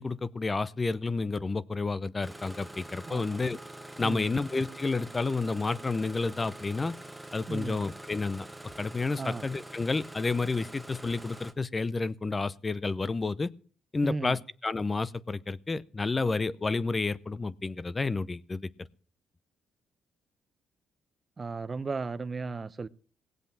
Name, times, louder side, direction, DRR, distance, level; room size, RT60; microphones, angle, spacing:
voice 1, 0.0-3.6 4.0-6.9 7.3-8.5 8.8-13.5 13.9-18.7, left 3 dB, 25° left, 0.7 m, -30 dB
Engine starting, 2.2-11.5, right 1 dB, 5° right, 1.2 m, -45 dB
voice 2, 3.1-3.4 4.0-4.3 7.5-7.8 9.2-9.4 14.0-14.4 21.4-22.9, right 4 dB, 30° right, 0.7 m, -35 dB
18.0 x 8.1 x 7.3 m
cardioid pair, 90°, 0 cm